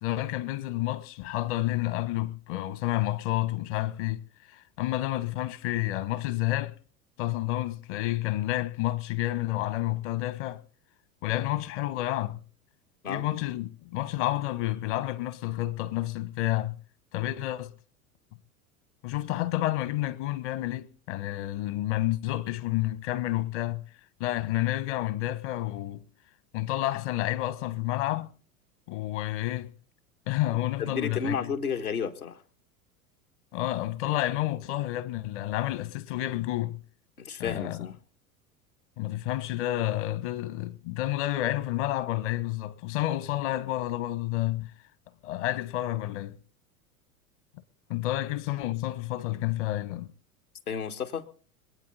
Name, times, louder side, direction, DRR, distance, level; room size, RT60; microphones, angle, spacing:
voice 1, 0.0-4.2 4.5-6.7 7.2-10.6 11.2-12.4 13.1-16.8 17.1-17.7 19.0-23.8 24.2-26.0 26.5-28.3 28.9-29.7 30.3-31.5 33.5-36.8 37.4-37.9 39.0-44.7 45.2-46.4 47.9-50.1, left 15 dB, 50° left, 1.4 m, -30 dB
voice 2, 30.8-32.4 37.2-37.9 50.7-51.2, left 6 dB, 75° left, 1.7 m, -32 dB
26.0 x 9.1 x 4.1 m
figure-of-eight pair, 80°, 44 cm